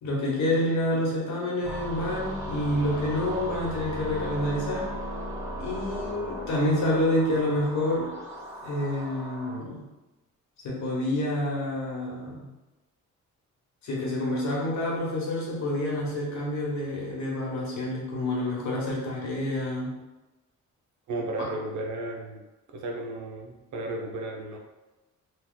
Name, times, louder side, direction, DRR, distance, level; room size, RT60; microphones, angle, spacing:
voice 1, 0.0-4.9 5.6-8.1 8.6-9.9 10.6-12.5 13.8-19.9, left 1 dB, 65° left, -4 dB, 1.2 m, -28 dB
sound 1, 1.6-9.6, equal, 10° right, 0.9 m, -37 dB
voice 2, 21.1-22.4 22.7-24.6, right 2 dB, 70° right, 1 dB, 0.7 m, -34 dB
3.0 x 2.3 x 3.7 m, 1.0 s
cardioid pair, 120°, 31 cm